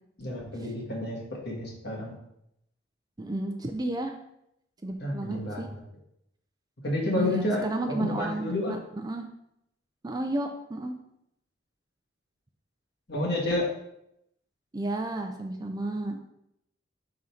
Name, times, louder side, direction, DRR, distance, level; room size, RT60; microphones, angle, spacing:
voice 1, 0.2-2.2 5.0-5.8 6.8-8.8 13.1-13.7, left 1 dB, 60° left, -2 dB, 1.6 m, -30 dB
voice 2, 3.2-4.1 4.8-5.7 7.1-8.4 8.7-8.8 9.0-9.3 10.0-10.9 14.7-16.2, right 2 dB, 20° right, 4 dB, 0.4 m, -32 dB
4.6 x 3.8 x 5.6 m, 0.78 s
head